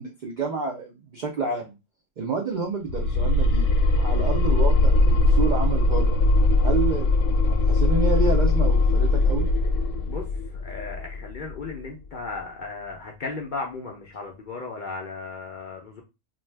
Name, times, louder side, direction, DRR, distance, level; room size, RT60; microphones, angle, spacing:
voice 1, 0.0-1.7 2.2-3.7 4.0-6.2 6.6-9.5, right 4 dB, 70° right, 1 dB, 0.4 m, -29 dB
sound 1, 2.9-11.8, left 2 dB, 85° left, 1.0 m, -21 dB
voice 2, 10.6-16.0, left 3 dB, 60° left, 0 dB, 0.5 m, -35 dB
2.6 x 2.2 x 3.2 m, 0.27 s
omnidirectional pair, 1.3 m